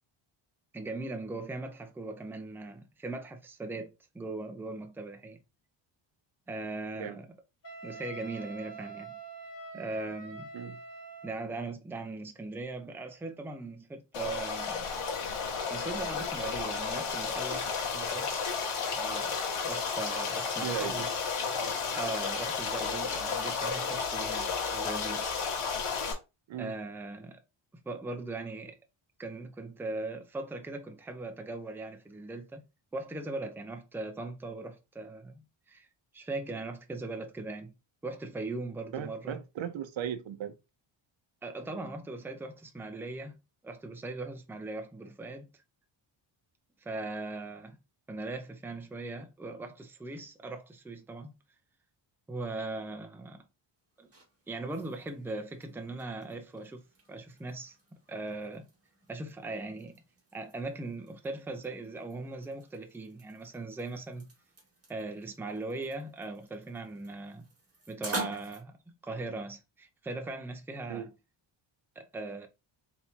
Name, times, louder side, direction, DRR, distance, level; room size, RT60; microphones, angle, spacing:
voice 1, 0.7-5.4 6.5-7.3 7.8-9.2 9.7-10.5 11.2-14.9 15.7-17.7 17.9-18.3 18.9-21.1 21.9-25.2 26.6-27.4 27.9-28.8 29.2-32.6 32.9-35.9 36.1-37.7 38.0-39.4 41.4-43.4 43.6-45.5 46.8-47.8 48.1-51.3 52.3-53.5 54.0-54.1 54.5-56.8 57.1-57.8 58.1-58.7 59.1-60.0 60.3-64.3 64.9-67.4 67.9-68.7 69.0-71.1 72.0-72.5, right 2 dB, 5° right, 0.5 m, -39 dB
Wind instrument woodwind instrument, 7.6-11.5, right 3 dB, 40° left, 1.5 m, -45 dB
Stream, 14.1-26.1, left 5 dB, 80° left, 1.6 m, -32 dB
voice 2, 20.6-21.0 26.5-26.8 38.9-40.6 70.9-71.1, right 9 dB, 65° right, 0.7 m, -37 dB
sound 1, 53.8-68.6, right 2 dB, 30° right, 1.7 m, -47 dB
4.2 x 3.5 x 2.8 m
cardioid pair, 110°, 50 cm